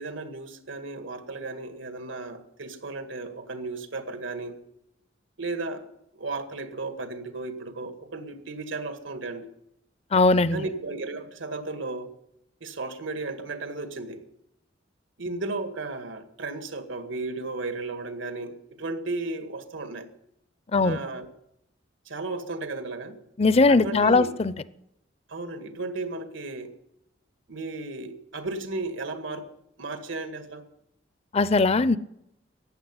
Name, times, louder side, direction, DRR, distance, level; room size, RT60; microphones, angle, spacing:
voice 1, 0.0-4.6 5.4-5.8 6.1-9.5 10.5-12.1 12.6-14.2 15.2-20.1 20.7-21.3 22.1-23.2 23.7-24.3 25.3-26.7 27.5-29.5 29.8-30.6, right 3 dB, 90° right, 2.0 m, -34 dB
voice 2, 10.1-10.6 20.7-21.0 23.4-24.5 31.3-32.0, left 3 dB, 35° left, 0.5 m, -20 dB
15.0 x 9.9 x 9.7 m
head